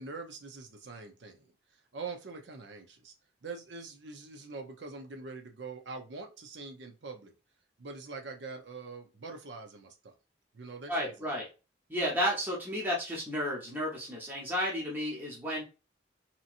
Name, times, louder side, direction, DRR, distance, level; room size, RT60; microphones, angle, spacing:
voice 1, 0.0-1.5 1.9-3.1 3.4-7.3 7.8-10.2 10.5-11.3, right 4 dB, 80° right, 5 dB, 0.7 m, -44 dB
voice 2, 10.9-11.5 11.9-15.6, equal, 10° right, -4 dB, 0.8 m, -32 dB
2.9 x 2.7 x 2.5 m, 0.31 s
head